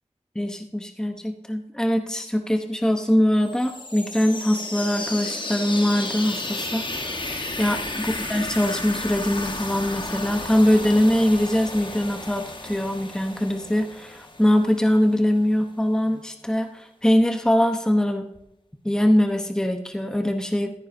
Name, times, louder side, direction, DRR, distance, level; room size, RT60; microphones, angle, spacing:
voice 1, 0.3-7.2 7.6-18.3 18.8-20.7, equal, 5° left, 6 dB, 0.9 m, -22 dB
sound 1, 3.4-15.1, left 2 dB, 40° left, 1.2 m, -33 dB
15.0 x 9.5 x 2.7 m, 0.81 s
wide cardioid pair, 70°, 12 cm